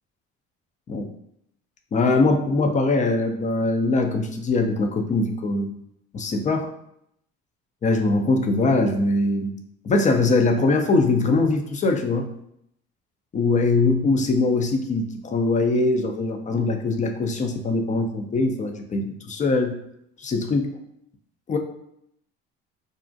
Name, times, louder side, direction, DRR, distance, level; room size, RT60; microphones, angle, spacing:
voice 1, 1.9-5.7 6.1-6.7 7.8-9.5 9.8-12.3 13.3-19.8 20.2-20.7 21.5-21.6, left 3 dB, 25° left, 5 dB, 0.4 m, -22 dB
2.4 x 2.0 x 2.6 m, 0.74 s
hypercardioid pair, 70°, 34 cm